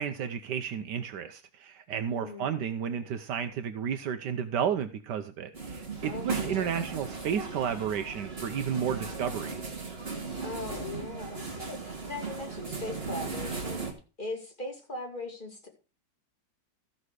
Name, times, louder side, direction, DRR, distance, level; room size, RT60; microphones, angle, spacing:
voice 1, 0.0-9.7, right 8 dB, 75° right, 9 dB, 1.3 m, -32 dB
voice 2, 2.1-2.5 6.0-6.7 10.4-13.8 14.2-15.7, left 2 dB, 25° left, 1 dB, 2.6 m, -39 dB
sound 1, 5.5-13.9, right 4 dB, 35° right, 1.9 m, -37 dB
14.0 x 6.8 x 4.8 m, 0.34 s
omnidirectional pair, 1.9 m